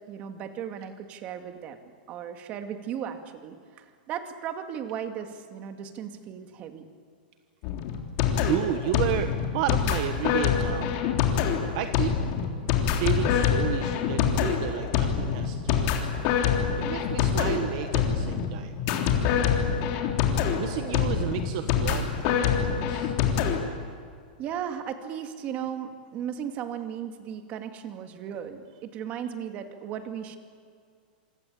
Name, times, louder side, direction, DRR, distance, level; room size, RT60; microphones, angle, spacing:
voice 1, 0.1-1.8 2.1-6.8 24.4-30.4, right 9 dB, 30° right, 7 dB, 2.3 m, -36 dB
sound 1, 7.6-23.6, left 7 dB, 40° left, 3.4 m, -25 dB
voice 2, 8.4-11.0 11.7-12.1 12.8-16.1 16.8-18.8 20.6-23.1, right 12 dB, 45° right, 9 dB, 1.2 m, -32 dB
27.0 x 24.5 x 8.7 m, 2.2 s
supercardioid pair, 165°, 5 cm